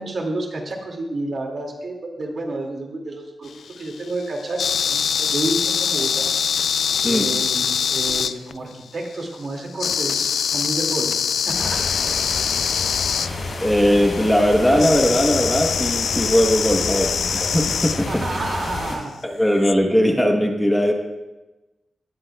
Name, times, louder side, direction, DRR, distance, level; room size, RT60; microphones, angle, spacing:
voice 1, 0.0-6.3 7.0-7.6 7.9-11.9 18.0-19.7, right 2 dB, 50° right, 1 dB, 2.1 m, -30 dB
sound 1, 3.5-8.7 9.8-13.3 14.8-18.0 19.6-19.7, left 7 dB, 80° left, 0.3 m, -23 dB
sound 2, 11.5-18.9, left 3 dB, 65° left, 4.2 m, -30 dB
voice 2, 13.6-18.3 19.2-20.9, equal, 5° left, 2 dB, 1.0 m, -19 dB
18.5 x 13.0 x 2.3 m, 1.1 s
wide cardioid pair, 140°, 0 cm